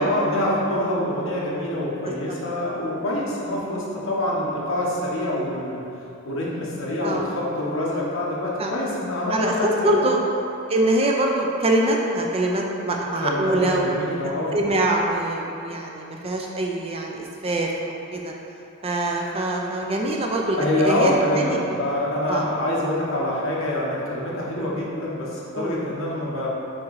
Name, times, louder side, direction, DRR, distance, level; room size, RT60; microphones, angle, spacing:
voice 1, 0.0-5.8 6.2-9.9 13.2-14.5 20.5-26.5, left 1 dB, 65° left, -5 dB, 1.1 m, -25 dB
voice 2, 9.3-10.2 10.7-13.9 14.5-18.3 18.8-21.6 22.3-22.5 24.6-24.8 25.6-25.8, right 1 dB, 30° right, 0 dB, 0.5 m, -24 dB
4.7 x 4.2 x 4.8 m, 2.8 s
head